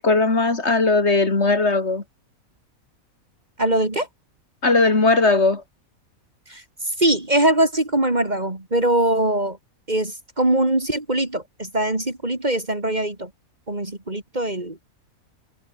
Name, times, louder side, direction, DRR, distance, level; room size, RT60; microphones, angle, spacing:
voice 1, 0.0-2.0 4.6-5.6, left 3 dB, 50° left, 3.4 m, -18 dB
voice 2, 3.6-4.1 6.5-6.6 7.0-9.6 9.9-13.3 13.7-14.8, right 1 dB, 30° right, 3.1 m, -22 dB
omnidirectional pair, 1.5 m